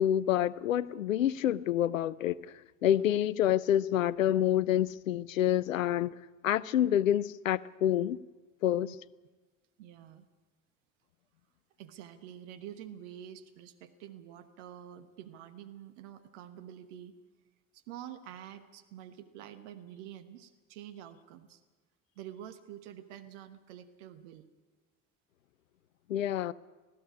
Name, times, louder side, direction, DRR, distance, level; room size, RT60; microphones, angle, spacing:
voice 1, 0.0-6.1 6.4-8.2 8.6-8.9 26.1-26.5, left 11 dB, 75° left, 0.6 m, -28 dB
voice 2, 2.8-3.1 8.8-8.9 9.8-10.2 11.8-17.1 17.7-21.6 22.2-24.5, right 10 dB, 60° right, 1.2 m, -48 dB
20.5 x 15.0 x 9.8 m
figure-of-eight pair, 55°, 39 cm